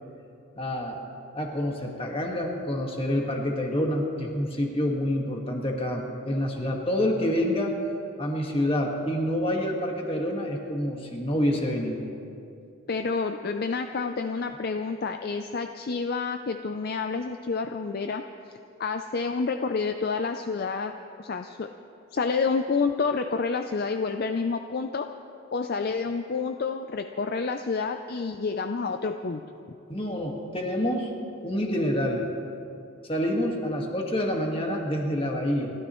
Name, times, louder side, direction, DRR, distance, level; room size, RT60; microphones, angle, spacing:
voice 1, 0.6-1.0 1.3-7.7 8.2-12.0 29.9-31.1 31.4-32.3 33.1-35.7, left 1 dB, 25° left, 1 dB, 1.7 m, -27 dB
voice 2, 12.9-18.2 18.8-20.9 21.2-21.7 22.1-25.1 25.5-29.4, left 4 dB, 45° left, 7 dB, 0.5 m, -29 dB
30.0 x 13.0 x 3.1 m, 2.6 s
head